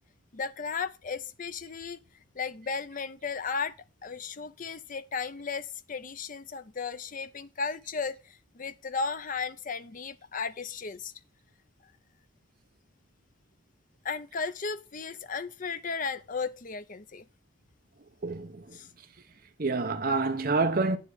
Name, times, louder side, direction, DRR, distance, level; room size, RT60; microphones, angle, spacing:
voice 1, 0.3-2.0 2.4-3.7 4.0-11.1 14.0-17.2 18.7-18.9, left 5 dB, 40° left, 0.6 m, -35 dB
voice 2, 18.2-18.8 19.6-21.0, right 3 dB, 45° right, 1.0 m, -27 dB
9.5 x 7.2 x 3.5 m
head